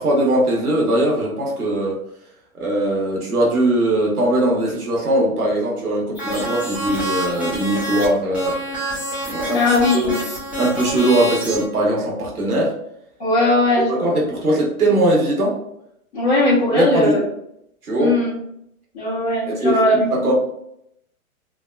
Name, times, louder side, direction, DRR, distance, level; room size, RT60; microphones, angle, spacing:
voice 1, 0.0-2.0 2.5-8.6 9.2-9.6 9.9-10.2 10.6-12.8 13.8-15.6 16.7-17.2 17.8-18.2 19.5-19.8 20.1-20.3, right 1 dB, 90° right, -3 dB, 1.0 m, -20 dB
sound 1, 6.1-8.1 8.3-11.7, right 1 dB, 5° right, 0.6 m, -27 dB
voice 2, 9.5-10.2 13.2-14.1 16.1-17.2 18.0-18.3 18.9-19.9, left 2 dB, 40° left, -9 dB, 1.1 m, -18 dB
3.4 x 2.1 x 2.3 m, 0.76 s
figure-of-eight pair, 115°, 43 cm